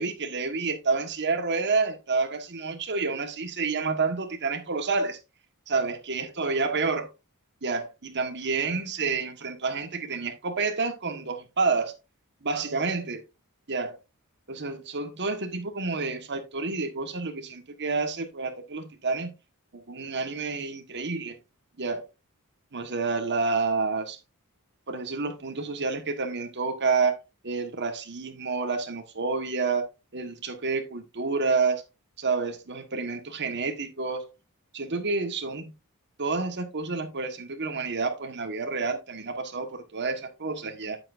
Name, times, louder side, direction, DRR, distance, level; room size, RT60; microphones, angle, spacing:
voice 1, 0.0-5.2 5.7-7.1 7.6-11.9 12.4-13.2 13.7-14.0 14.5-19.3 19.7-21.3 21.8-22.0 22.7-24.2 24.9-27.2 27.4-31.8 32.2-34.3 34.7-35.7 36.2-41.0, right 4 dB, 50° right, 1.4 m, -29 dB
8.6 x 8.3 x 2.5 m
head